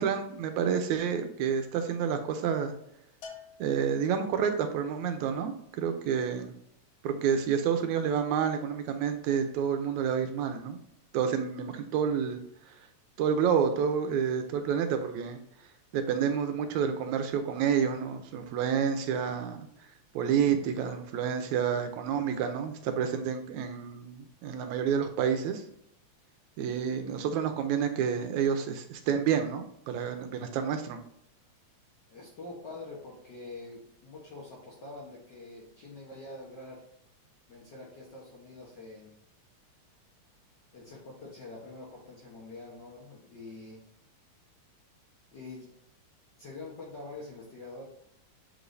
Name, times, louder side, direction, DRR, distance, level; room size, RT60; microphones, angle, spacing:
voice 1, 0.0-2.7 3.6-6.5 7.0-10.8 11.1-12.4 12.7-12.8 13.2-15.4 15.9-19.7 20.2-25.6 26.6-31.0, right 7 dB, 80° right, 7 dB, 2.0 m, -29 dB
Bell, 3.2-4.6, left 5 dB, 70° left, 1.9 m, -49 dB
voice 2, 32.1-36.8 37.5-39.1 40.7-43.8 45.3-45.7 46.4-47.8, left 2 dB, 55° left, -4 dB, 1.3 m, -45 dB
7.7 x 5.0 x 2.6 m, 0.72 s
omnidirectional pair, 3.3 m